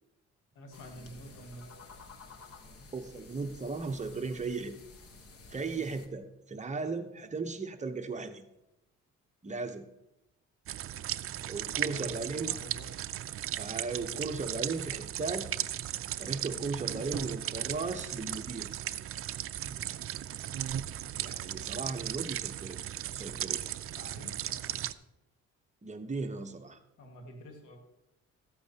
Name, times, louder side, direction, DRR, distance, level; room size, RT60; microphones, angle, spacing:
voice 1, 0.5-2.1 5.6-5.8 11.8-13.2 19.6-19.8 23.5-24.9 27.0-27.8, equal, 85° left, 2 dB, 1.8 m, -49 dB
sound 1, 0.7-6.1, left 3 dB, 50° left, 1.3 m, -52 dB
voice 2, 2.9-4.7 5.5-8.5 9.4-9.9 11.4-12.6 13.6-15.5 16.2-18.7 21.1-22.8 23.1-23.6 25.8-26.8, right 4 dB, 25° right, 6 dB, 0.9 m, -36 dB
sound 2, 10.7-24.9, right 11 dB, 50° right, 0.4 m, -36 dB
14.0 x 8.5 x 2.9 m, 0.92 s
cardioid pair, 90°, 30 cm